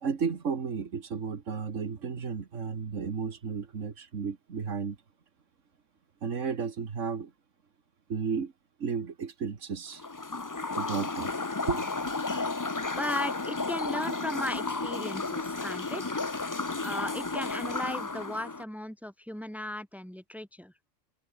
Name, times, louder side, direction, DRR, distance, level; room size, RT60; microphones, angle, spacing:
voice 1, 0.0-5.0 6.2-7.3 8.1-8.5 8.8-10.1 10.7-11.3 11.7-11.9, right 6 dB, 85° right, 2.0 m, -33 dB
sound 1, 10.0-18.6, left 3 dB, 20° left, 0.6 m, -33 dB
voice 2, 13.0-16.2 16.8-20.7, left 1 dB, ahead, 3.2 m, -36 dB
omnidirectional pair, 1.2 m